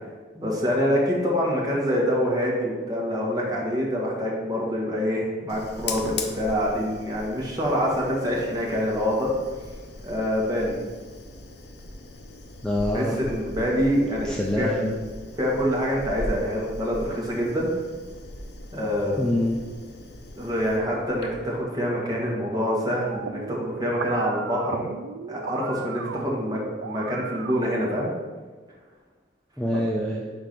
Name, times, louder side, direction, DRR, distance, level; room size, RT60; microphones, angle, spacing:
voice 1, 0.3-9.3 10.0-10.8 12.9-14.7 15.4-17.7 18.7-19.3 20.4-24.9 25.3-28.1, equal, 20° right, -3 dB, 1.4 m, -26 dB
Fire, 5.5-21.6, left 2 dB, 55° left, 0.7 m, -39 dB
voice 2, 12.6-13.2 14.2-14.9 19.2-19.6 29.6-30.2, left 1 dB, 5° left, -2 dB, 0.5 m, -25 dB
sound 1, 23.1-28.1, right 6 dB, 70° right, 0.4 m, -36 dB
5.2 x 4.6 x 5.9 m, 1.4 s
head